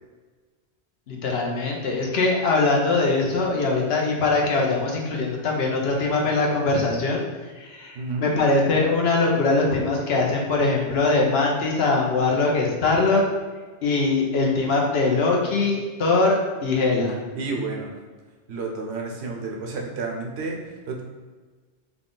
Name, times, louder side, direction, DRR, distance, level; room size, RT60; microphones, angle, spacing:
voice 1, 1.1-13.2 13.8-17.2, left 3 dB, 70° left, -1 dB, 0.9 m, -22 dB
voice 2, 17.3-17.9 18.5-21.0, right 3 dB, 80° right, 0 dB, 0.9 m, -31 dB
3.5 x 2.3 x 3.7 m, 1.4 s
omnidirectional pair, 1.1 m